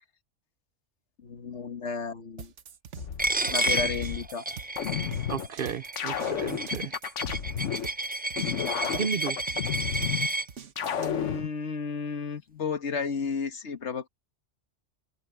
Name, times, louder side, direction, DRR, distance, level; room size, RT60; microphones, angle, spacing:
voice 1, 1.2-2.5 3.4-4.4 11.0-14.1, left 5 dB, 75° left, 1.6 m, -33 dB
sound 1, 2.4-11.1, right 7 dB, 85° right, 1.4 m, -45 dB
sound 2, 3.0-4.3 4.8-5.5 6.0-7.9 8.4-10.3 10.8-11.5, left 9 dB, 90° left, 1.3 m, -31 dB
Coin (dropping), 3.2-10.5, right 2 dB, 15° right, 0.4 m, -31 dB
voice 2, 5.3-6.9 8.8-9.4, right 7 dB, 55° right, 0.8 m, -33 dB
omnidirectional pair, 1.2 m